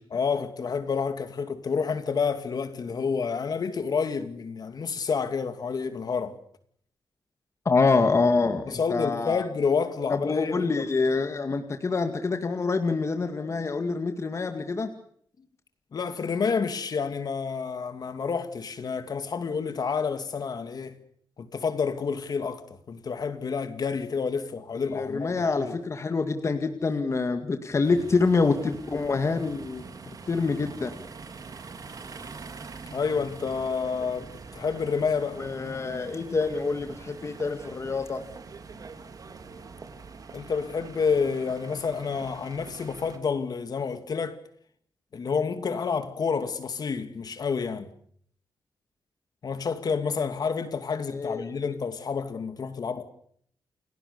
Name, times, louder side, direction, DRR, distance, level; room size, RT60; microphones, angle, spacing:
voice 1, 0.1-6.3 8.7-10.9 15.9-21.0 21.4-25.8 32.9-35.4 40.3-44.4 45.1-47.9 49.4-53.1, left 5 dB, 50° left, 2.5 m, -29 dB
voice 2, 7.7-9.4 10.1-14.9 24.7-29.8 30.3-30.9 35.4-38.2 51.1-51.5, left 4 dB, 35° left, 2.1 m, -26 dB
sound 1, 27.8-43.2, right 4 dB, 45° right, 2.8 m, -44 dB
29.5 x 19.0 x 6.8 m
wide cardioid pair, 155°, 8 cm